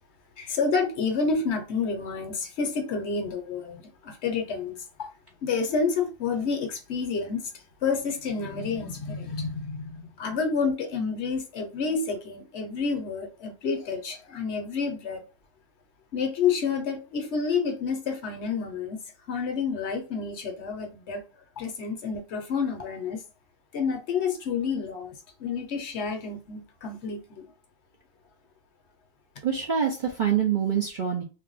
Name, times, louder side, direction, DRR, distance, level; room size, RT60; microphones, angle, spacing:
voice 1, 0.4-5.1 5.4-15.2 16.1-19.0 19.3-21.2 21.6-23.2 23.7-25.1 25.4-27.5, left 5 dB, 60° left, 0.9 m, -29 dB
voice 2, 29.4-31.2, right 8 dB, 55° right, 0.5 m, -25 dB
2.6 x 2.2 x 3.8 m
omnidirectional pair, 1.4 m